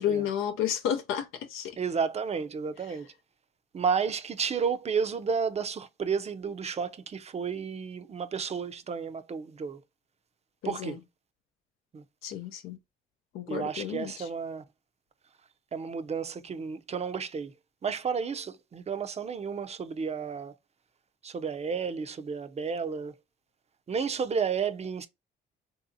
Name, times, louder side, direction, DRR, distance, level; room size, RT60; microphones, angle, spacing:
voice 1, 0.0-1.8 10.6-11.0 12.2-12.8 13.3-14.2, left 9 dB, 90° left, 0.5 m, -31 dB
voice 2, 1.8-3.1 3.7-9.8 10.6-11.0 11.9-12.0 13.5-14.6 15.7-17.5 17.8-20.5 21.2-23.1 23.9-25.1, right 6 dB, 35° right, 0.5 m, -32 dB
3.4 x 2.7 x 2.5 m
cardioid pair, 90°, 20 cm